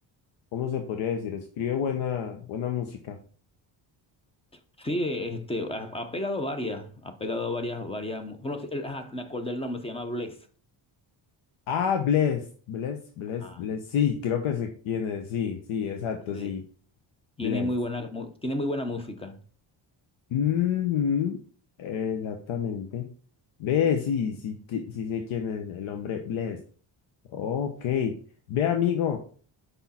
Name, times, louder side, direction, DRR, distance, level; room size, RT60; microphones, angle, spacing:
voice 1, 0.5-3.2 11.7-16.6 17.4-17.7 20.3-21.4 21.8-23.1 23.6-26.6 27.3-28.2 28.5-29.2, left 8 dB, 80° left, 1.0 m, -28 dB
voice 2, 4.8-10.4 13.4-13.6 16.3-16.6 17.4-19.4, left 1 dB, 10° left, 0.6 m, -32 dB
6.0 x 5.5 x 4.2 m
cardioid pair, 180°, 48 cm